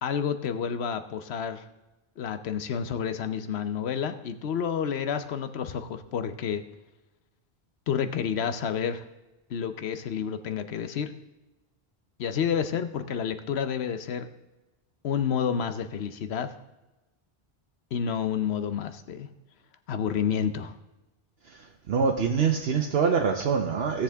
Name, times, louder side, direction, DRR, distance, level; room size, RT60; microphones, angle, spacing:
voice 1, 0.0-1.6 2.2-6.6 7.9-9.0 9.5-11.1 12.2-14.3 15.0-16.5 17.9-19.3 19.9-20.7, left 7 dB, 90° left, 10 dB, 1.0 m, -29 dB
voice 2, 21.9-24.0, right 6 dB, 75° right, 2 dB, 1.1 m, -24 dB
16.5 x 7.2 x 3.5 m, 1.0 s
omnidirectional pair, 1.0 m